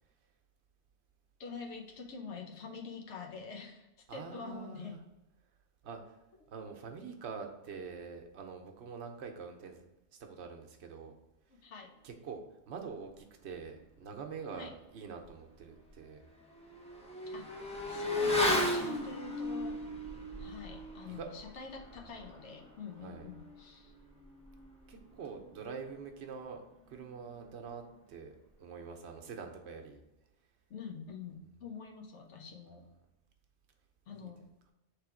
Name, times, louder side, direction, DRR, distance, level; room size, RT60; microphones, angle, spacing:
voice 1, 1.4-5.0 11.6-12.0 14.5-14.7 17.3-17.4 17.9-19.8 20.4-23.9 30.7-32.8 34.1-34.4, left 5 dB, 85° left, 2 dB, 1.1 m, -46 dB
voice 2, 4.1-5.0 5.8-9.9 10.2-11.2 12.0-16.2 20.4-20.6 21.1-21.3 21.9-22.1 23.0-23.4 24.9-28.3 28.6-30.0 31.6-31.7 34.1-34.3, right 5 dB, 75° right, 4 dB, 0.9 m, -45 dB
Motorcycle / Accelerating revving vroom, 15.2-15.3 15.7-25.7 26.0-26.1, left 1 dB, 10° left, 0.5 m, -36 dB
3.4 x 3.1 x 4.8 m, 0.97 s
omnidirectional pair, 1.1 m